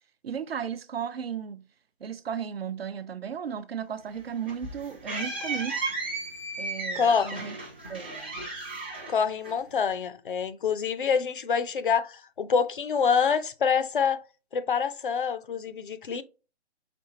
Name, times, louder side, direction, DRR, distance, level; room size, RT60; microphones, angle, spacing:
voice 1, 0.2-1.7 2.0-5.8 6.6-7.6 7.9-8.4, right 7 dB, 65° right, 0.6 m, -35 dB
sound 1, 4.1-9.9, right 3 dB, 10° right, 0.4 m, -35 dB
voice 2, 7.0-7.5 9.1-14.2 14.5-16.2, left 6 dB, 50° left, 0.5 m, -26 dB
5.1 x 3.2 x 2.7 m
figure-of-eight pair, 150°, 33 cm